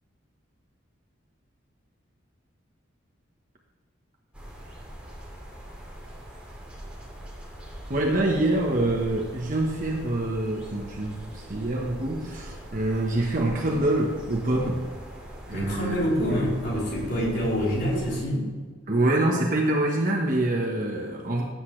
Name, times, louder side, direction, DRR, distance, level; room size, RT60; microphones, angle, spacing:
sound 1, 4.3-18.2, equal, 5° right, 2.5 m, -42 dB
voice 1, 7.9-14.8 15.5-16.0 17.1-17.3 18.9-21.4, right 1 dB, 40° right, -1 dB, 1.1 m, -25 dB
voice 2, 15.5-18.5, equal, 50° left, -5 dB, 3.8 m, -26 dB
16.0 x 8.3 x 3.2 m, 1.5 s
head